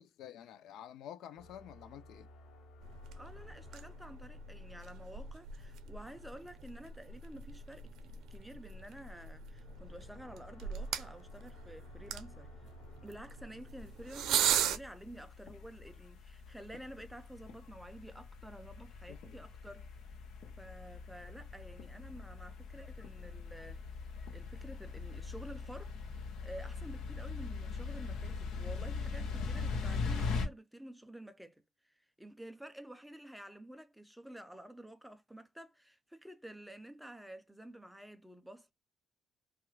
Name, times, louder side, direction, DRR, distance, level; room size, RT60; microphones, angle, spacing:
voice 1, 0.0-2.3 19.1-19.4, left 10 dB, 70° left, 0.3 m, -50 dB
sound 1, 1.3-5.1 9.6-14.4, left 1 dB, 55° left, 0.8 m, -58 dB
sound 2, 2.8-14.8, right 8 dB, 80° right, 0.5 m, -39 dB
voice 2, 3.1-12.7 13.0-19.9 20.6-23.8 24.3-26.0 26.4-38.7, right 1 dB, ahead, 0.3 m, -51 dB
sound 3, 13.8-30.5, left 4 dB, 90° left, 0.8 m, -41 dB
2.9 x 2.4 x 3.1 m
cardioid pair, 170°, 0 cm